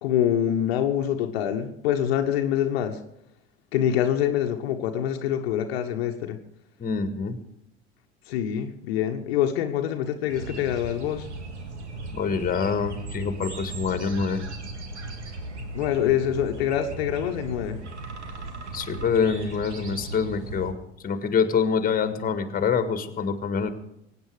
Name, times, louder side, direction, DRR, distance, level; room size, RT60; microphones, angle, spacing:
voice 1, 0.0-3.0 3.7-6.4 8.3-11.3 15.7-17.8, left 10 dB, 60° left, 4 dB, 1.3 m, -25 dB
voice 2, 6.8-7.4 12.1-14.4 18.7-20.7 21.0-23.7, left 6 dB, 25° left, 10 dB, 1.8 m, -25 dB
sound 1, 10.3-20.7, right 3 dB, 80° right, 1.8 m, -37 dB
23.0 x 9.5 x 4.9 m, 0.81 s
figure-of-eight pair, 75°, 34 cm